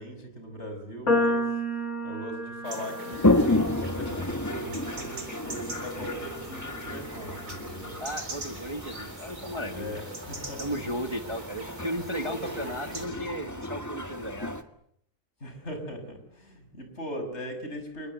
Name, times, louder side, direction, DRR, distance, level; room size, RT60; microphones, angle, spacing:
voice 1, 0.0-1.5 2.0-8.0 9.7-10.6 12.2-13.2 15.4-18.1, equal, 45° left, 6 dB, 6.3 m, -39 dB
sound 1, 1.1-7.4, left 1 dB, 65° left, 4.6 m, -32 dB
sound 2, 2.6-13.1, right 2 dB, 70° right, 4.4 m, -43 dB
Toilet flush, 3.1-14.6, left 2 dB, 10° left, 1.6 m, -31 dB
voice 2, 8.0-10.0 10.6-14.5, equal, 20° right, 6 dB, 1.5 m, -35 dB
29.0 x 20.0 x 8.2 m, 0.70 s
omnidirectional pair, 1.6 m